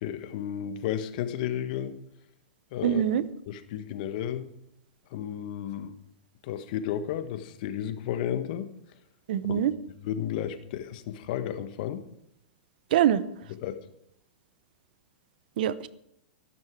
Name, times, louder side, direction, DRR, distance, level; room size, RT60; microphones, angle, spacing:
voice 1, 0.0-2.0 2.7-3.0 3.5-4.5 5.1-5.9 6.4-8.7 9.4-9.7 10.0-12.0 13.6-13.8, left 10 dB, 55° left, 10 dB, 1.3 m, -33 dB
voice 2, 2.8-3.2 9.3-9.7 12.9-13.2 15.6-15.9, right 10 dB, 65° right, 16 dB, 0.8 m, -23 dB
13.5 x 12.0 x 4.7 m, 0.76 s
hypercardioid pair, 110°, 5 cm